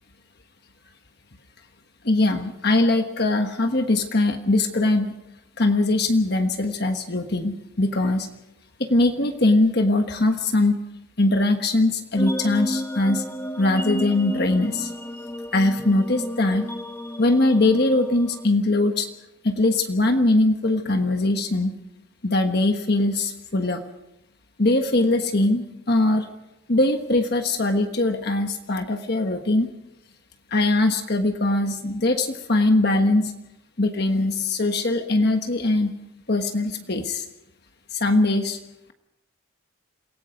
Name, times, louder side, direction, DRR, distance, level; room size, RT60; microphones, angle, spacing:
voice 1, 2.0-5.1 5.6-8.3 8.8-10.8 11.2-13.2 13.6-14.9 15.5-16.7 17.2-19.1 19.4-21.7 22.2-23.8 24.6-26.3 26.7-29.7 30.5-33.3 33.8-35.9 36.3-37.3 37.9-38.6, left 2 dB, 50° left, 5 dB, 1.3 m, -21 dB
sound 1, 12.2-18.5, equal, 10° left, 1.2 m, -32 dB
28.0 x 18.0 x 5.2 m, 0.88 s
head